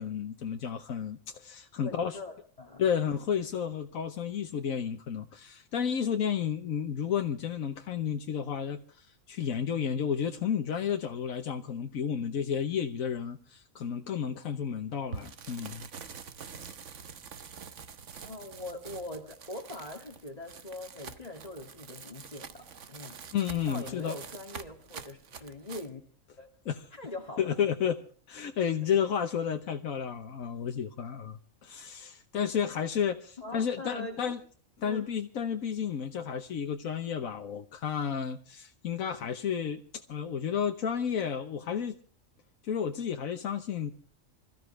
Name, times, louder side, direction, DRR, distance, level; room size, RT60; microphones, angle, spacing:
voice 1, 0.0-2.2 2.8-15.9 23.3-24.2 26.7-26.8 27.4-28.0 28.3-34.4 34.8-42.0 42.6-43.9, left 8 dB, 90° left, 1.4 m, -32 dB
voice 2, 1.8-2.8 3.3-3.4 18.3-23.2 23.7-26.0 26.4-26.5 26.9-27.6 33.4-34.2 34.8-35.1, left 2 dB, 30° left, 2.2 m, -42 dB
sound 1, 15.1-25.9, right 6 dB, 65° right, 1.4 m, -46 dB
27.0 x 14.0 x 3.3 m
omnidirectional pair, 1.4 m